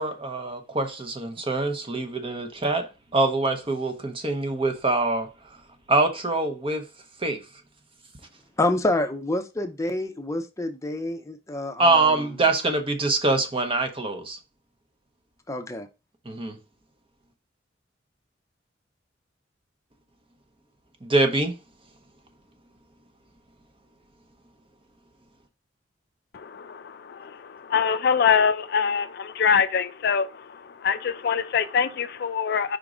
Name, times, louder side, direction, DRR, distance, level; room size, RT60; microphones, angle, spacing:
voice 1, 0.0-5.3 5.9-6.9 7.2-7.4 11.8-14.4 16.3-16.6 21.0-21.5, right 2 dB, 30° right, 0.8 m, -24 dB
voice 2, 8.6-12.4 15.5-15.9, left 2 dB, 15° left, 0.6 m, -28 dB
voice 3, 26.3-32.8, left 6 dB, 55° left, 0.4 m, -24 dB
5.2 x 3.7 x 4.9 m
head